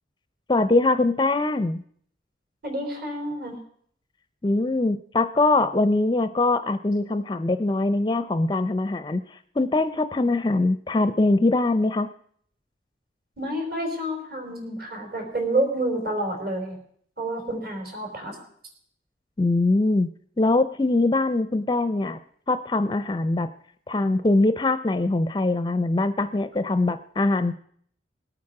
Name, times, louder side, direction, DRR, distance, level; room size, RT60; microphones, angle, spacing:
voice 1, 0.5-1.8 4.4-9.2 9.6-12.1 19.4-20.1 20.4-22.2 22.5-23.5 23.9-27.5, left 2 dB, 25° left, 12 dB, 0.5 m, -22 dB
voice 2, 2.6-3.6 13.4-16.8 17.2-18.4, right 1 dB, 55° right, 2 dB, 4.5 m, -29 dB
20.5 x 8.7 x 4.8 m, 0.62 s
head